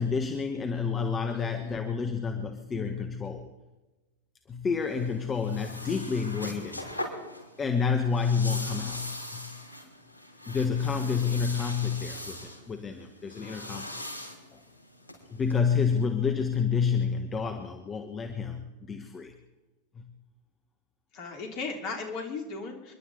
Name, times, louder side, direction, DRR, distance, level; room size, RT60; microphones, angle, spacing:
voice 1, 0.0-3.5 4.5-6.9 7.6-9.5 10.5-14.0 15.3-19.3 20.0-20.1, left 5 dB, 20° left, 6 dB, 1.3 m, -29 dB
voice 2, 1.3-1.8 10.8-11.0 21.1-22.9, left 4 dB, 40° left, 3 dB, 3.3 m, -37 dB
sound 1, 4.8-15.6, left 1 dB, 85° right, 5.3 m, -41 dB
28.0 x 11.5 x 4.1 m, 1.1 s
figure-of-eight pair, 90°, 0 cm